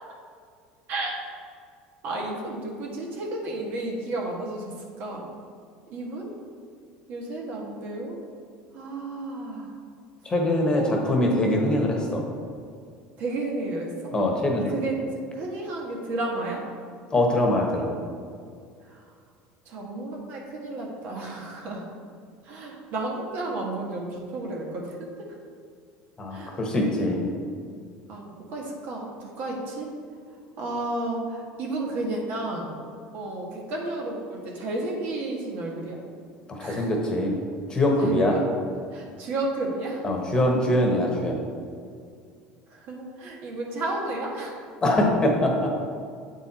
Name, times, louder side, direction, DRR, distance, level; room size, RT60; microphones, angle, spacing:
voice 1, 0.9-1.2 2.0-5.3 5.9-6.3 7.1-8.2 8.7-9.7 10.8-11.0 13.2-14.1 14.7-15.1 15.3-16.6 18.8-19.0 19.6-21.9 22.4-25.0 26.3-26.6 28.1-29.9 30.6-32.7 33.1-36.0 36.6-36.9 38.0-38.4 38.9-40.0 42.7-44.6, right 2 dB, 60° right, -1 dB, 1.5 m, -32 dB
voice 2, 10.2-12.2 14.1-14.7 17.1-17.9 26.2-27.3 36.5-37.4 37.7-38.4 40.0-41.4 44.8-45.8, left 1 dB, 20° left, 0 dB, 1.3 m, -23 dB
7.9 x 4.5 x 4.3 m, 2.2 s
supercardioid pair, 110°, 4 cm